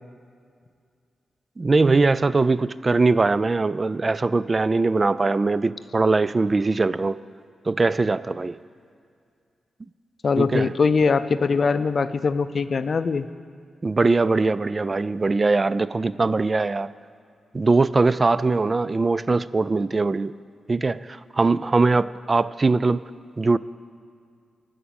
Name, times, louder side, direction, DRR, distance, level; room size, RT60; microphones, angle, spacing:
voice 1, 1.6-7.2 7.7-8.6 10.4-10.7 13.8-16.9 17.5-20.3 20.7-23.0 23.4-23.6, right 3 dB, 40° right, 17 dB, 0.3 m, -21 dB
voice 2, 10.2-13.3, left 4 dB, 55° left, 13 dB, 0.4 m, -22 dB
13.0 x 5.0 x 8.8 m, 2.2 s
supercardioid pair, 50°, 0 cm